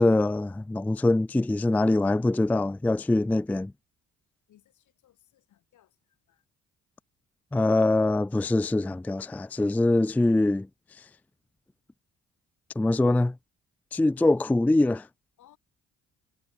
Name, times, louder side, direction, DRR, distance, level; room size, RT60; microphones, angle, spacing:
voice 1, 0.0-3.7 7.5-10.7 12.8-13.4 13.9-15.1, left 2 dB, 5° left, 0.4 m, -23 dB
voice 2, 4.5-6.0 6.3-6.4 15.4-15.6, left 12 dB, 75° left, 6.9 m, -61 dB
cardioid pair, 90°, 30 cm